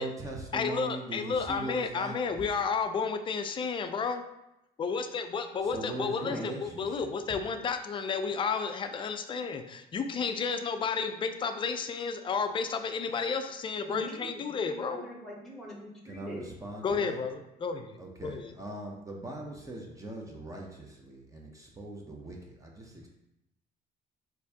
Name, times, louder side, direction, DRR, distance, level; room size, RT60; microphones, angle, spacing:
voice 1, 0.0-2.2 5.6-7.1 16.0-17.2 18.0-23.1, right 1 dB, 20° right, 0 dB, 0.6 m, -40 dB
voice 2, 0.5-4.2 4.8-15.0 16.8-18.5, left 5 dB, 30° left, 7 dB, 0.3 m, -32 dB
voice 3, 13.9-16.5, left 1 dB, ahead, -2 dB, 1.0 m, -42 dB
4.3 x 2.6 x 2.8 m, 0.87 s
cardioid pair, 110°, 17 cm